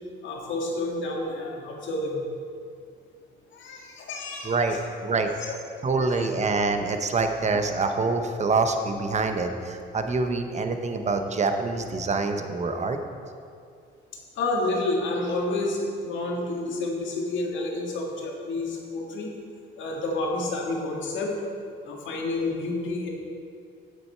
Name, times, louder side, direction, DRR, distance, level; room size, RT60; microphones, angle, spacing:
voice 1, 0.2-2.3 3.5-4.8 5.4-5.5 6.0-6.3 14.4-19.3 19.8-21.3 21.8-23.1, left 2 dB, 75° left, 0 dB, 1.7 m, -29 dB
voice 2, 4.4-5.6 5.8-13.0, right 3 dB, 35° right, 6 dB, 0.8 m, -26 dB
8.1 x 7.8 x 4.5 m, 2.3 s
cardioid pair, 90°, 20 cm